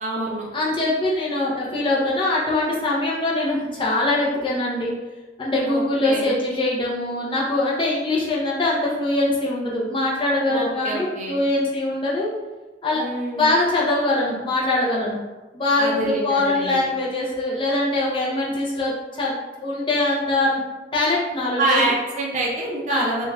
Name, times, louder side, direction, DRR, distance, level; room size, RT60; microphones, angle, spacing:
voice 1, 0.0-0.5 5.7-6.3 10.5-11.4 12.9-13.5 15.8-16.8 21.6-23.3, right 2 dB, 40° right, -3 dB, 0.5 m, -26 dB
voice 2, 0.5-4.9 5.4-12.3 12.8-13.0 13.3-15.2 15.5-19.4 19.6-20.6 20.9-21.9 22.9-23.1, left 2 dB, 25° left, -5 dB, 0.5 m, -22 dB
2.4 x 2.2 x 3.2 m, 1.2 s
head